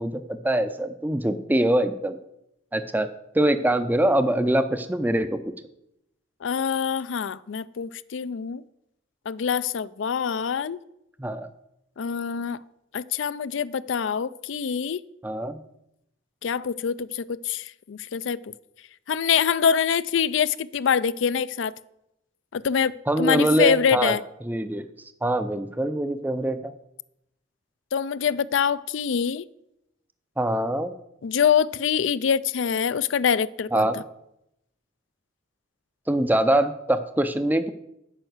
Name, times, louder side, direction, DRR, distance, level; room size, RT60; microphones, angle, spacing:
voice 1, 0.0-2.2 2.7-3.1 3.3-5.4 11.2-11.5 15.2-15.6 23.1-24.2 24.4-24.9 25.2-26.7 30.4-30.9 33.7-34.0 36.1-37.7, right 1 dB, 10° right, 0.4 m, -23 dB
voice 2, 6.4-8.6 9.3-10.8 12.0-12.6 12.9-15.0 16.4-18.4 19.1-21.7 22.5-24.2 27.9-29.5 31.2-33.9, left 7 dB, 70° left, 0.4 m, -25 dB
9.2 x 5.7 x 7.9 m
head